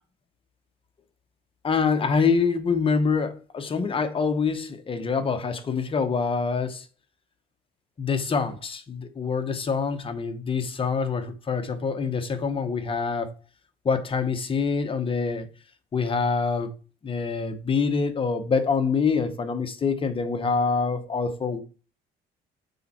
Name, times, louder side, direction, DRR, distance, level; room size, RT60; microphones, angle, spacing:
voice 1, 1.6-6.9 8.0-13.3 13.8-15.5 15.9-16.7 17.0-21.6, left 5 dB, 30° left, 1.0 m, -25 dB
6.7 x 4.3 x 4.2 m
cardioid pair, 110°, 17 cm